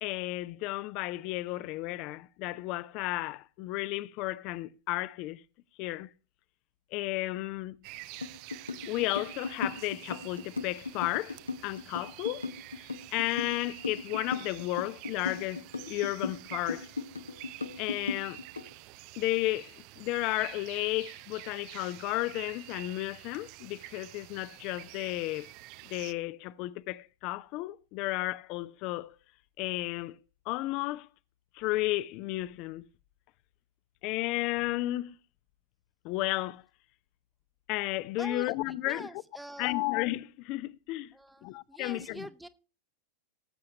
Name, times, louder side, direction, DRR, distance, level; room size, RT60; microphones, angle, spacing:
voice 1, 0.0-5.4 5.8-6.1 6.9-7.8 8.9-11.4 11.6-12.5 13.1-16.9 17.8-18.4 19.2-25.5 25.8-29.2 29.6-30.2 30.5-31.1 31.5-32.9 34.0-35.2 36.0-36.6 37.7-39.1 39.6-41.1 41.4-42.3, left 18 dB, 40° left, 0.6 m, -33 dB
sound 1, 7.8-26.1, right 18 dB, 45° right, 0.5 m, -48 dB
sound 2, 8.2-18.7, left 4 dB, 80° left, 0.9 m, -37 dB
voice 2, 38.2-39.8 41.1-42.5, right 1 dB, 5° right, 0.9 m, -45 dB
19.0 x 7.7 x 2.9 m
figure-of-eight pair, 90°, 0 cm